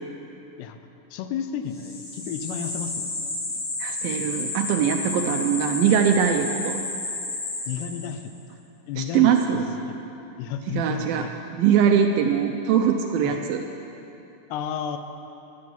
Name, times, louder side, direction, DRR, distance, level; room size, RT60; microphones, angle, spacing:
voice 1, 1.1-3.4 7.7-8.6 8.9-10.0 10.4-11.3 13.2-13.4 14.5-15.0, left 8 dB, 85° left, 8 dB, 2.9 m, -32 dB
sound 1, 1.7-8.3, left 2 dB, 35° left, 2.8 m, -31 dB
voice 2, 3.8-6.8 9.0-9.6 10.7-11.3 11.5-13.6, right 8 dB, 80° right, 4 dB, 2.2 m, -22 dB
14.0 x 10.5 x 7.2 m, 2.8 s
omnidirectional pair, 4.7 m